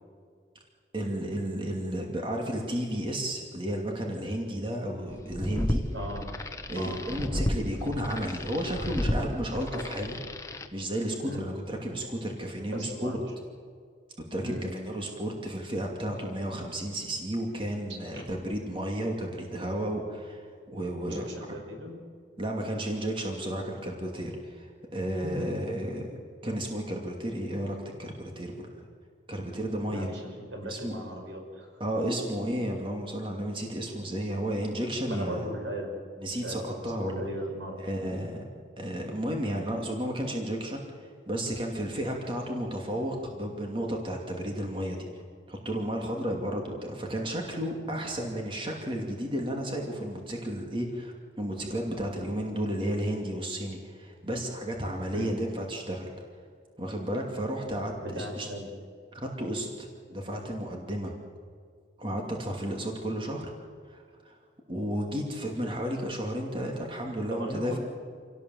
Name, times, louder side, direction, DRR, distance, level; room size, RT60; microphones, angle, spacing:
voice 1, 0.9-5.8 6.7-10.2 10.7-13.2 14.3-21.3 22.4-28.7 29.3-30.1 30.6-31.0 31.8-35.4 36.2-37.2 37.8-38.4 38.8-45.2 45.5-56.2 56.8-58.5 59.1-61.1 62.0-63.5 63.9-64.4 64.7-67.8, right 1 dB, 30° right, 1 dB, 2.6 m, -33 dB
sound 1, 5.2-10.7, left 1 dB, 15° left, 1.2 m, -32 dB
voice 2, 5.9-6.2 6.8-7.0 11.2-11.4 12.7-13.1 14.4-14.7 18.1-18.2 21.0-21.9 25.2-25.5 29.9-31.7 35.1-35.9 36.2-37.8 55.1-55.3 58.0-58.7 67.3-67.8, equal, 85° right, 1 dB, 6.0 m, -37 dB
27.5 x 17.5 x 7.8 m, 2.1 s
head